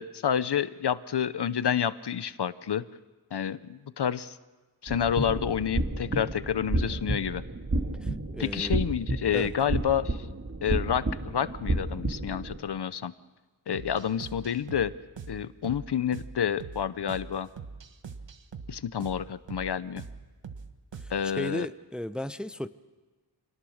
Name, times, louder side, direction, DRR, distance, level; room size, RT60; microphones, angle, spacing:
voice 1, 0.0-2.8 3.3-4.4 4.8-7.4 8.4-10.2 10.6-13.1 13.7-14.9 15.3-17.5 18.7-20.0 21.1-21.7, left 8 dB, 65° left, 15 dB, 0.8 m, -29 dB
sound 1, 4.9-12.6, right 2 dB, 35° right, 2.4 m, -31 dB
voice 2, 8.0-8.8 9.3-9.5 21.0-22.7, left 1 dB, ahead, 12 dB, 0.6 m, -35 dB
sound 2, 13.7-21.3, right 5 dB, 80° right, 1.4 m, -43 dB
27.5 x 19.0 x 6.5 m, 1.3 s
wide cardioid pair, 110°, 43 cm